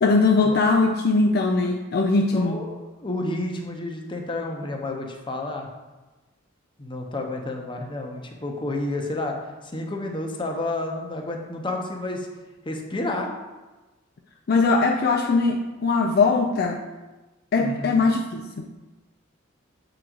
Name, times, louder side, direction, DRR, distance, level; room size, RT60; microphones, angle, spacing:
voice 1, 0.0-2.6 14.5-16.8 17.5-18.7, left 3 dB, 50° left, 2 dB, 0.4 m, -21 dB
voice 2, 2.3-5.7 6.8-9.4 9.7-12.3 12.6-13.3 17.6-18.0, left 2 dB, 25° left, 2 dB, 0.8 m, -30 dB
7.4 x 3.9 x 4.5 m, 1.1 s
head